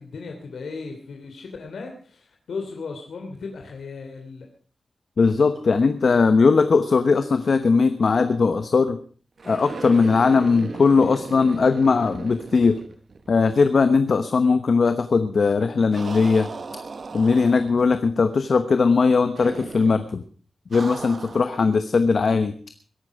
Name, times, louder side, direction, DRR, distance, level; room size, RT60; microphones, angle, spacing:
voice 1, 0.0-4.5, left 4 dB, 85° left, 2 dB, 3.0 m, -36 dB
voice 2, 5.2-9.0 9.5-12.8 13.3-16.5 17.1-20.2 20.7-22.5, left 4 dB, 50° left, 9 dB, 1.0 m, -19 dB
sound 1, 9.4-13.5 13.8-13.9 15.9-17.9 19.4-20.0 20.7-21.6, right 4 dB, 50° right, 1.4 m, -37 dB
21.5 x 11.5 x 4.8 m, 0.42 s
wide cardioid pair, 165°, 0 cm